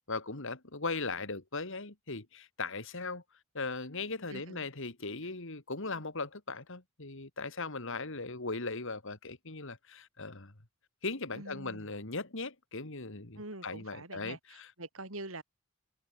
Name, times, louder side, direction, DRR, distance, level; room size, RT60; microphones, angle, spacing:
voice 1, 0.1-3.2 3.5-10.5 11.0-14.7, left 3 dB, 65° left, 2.9 m, -38 dB
voice 2, 4.3-4.6 11.3-11.9 13.4-15.4, right 2 dB, 70° right, 6.0 m, -45 dB
head